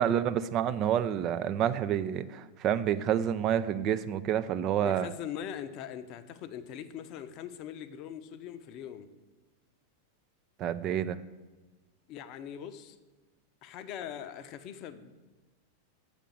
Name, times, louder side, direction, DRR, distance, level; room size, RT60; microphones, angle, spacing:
voice 1, 0.0-5.1 10.6-11.2, right 10 dB, 35° right, 12 dB, 0.4 m, -28 dB
voice 2, 4.8-9.1 12.1-13.0 13.6-15.3, left 9 dB, 40° left, 11 dB, 0.6 m, -41 dB
7.4 x 5.1 x 7.3 m, 1.3 s
figure-of-eight pair, 90°, 0 cm